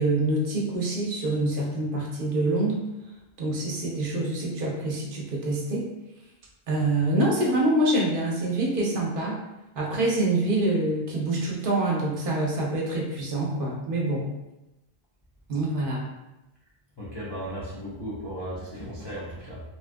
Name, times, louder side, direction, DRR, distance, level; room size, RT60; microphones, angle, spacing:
voice 1, 0.0-2.8 3.4-5.8 6.7-9.4 9.8-14.3 15.5-16.0, right 2 dB, 65° right, -3 dB, 0.8 m, -26 dB
voice 2, 17.0-19.6, equal, 35° left, -9 dB, 0.4 m, -36 dB
2.8 x 2.3 x 2.5 m, 0.96 s
omnidirectional pair, 1.0 m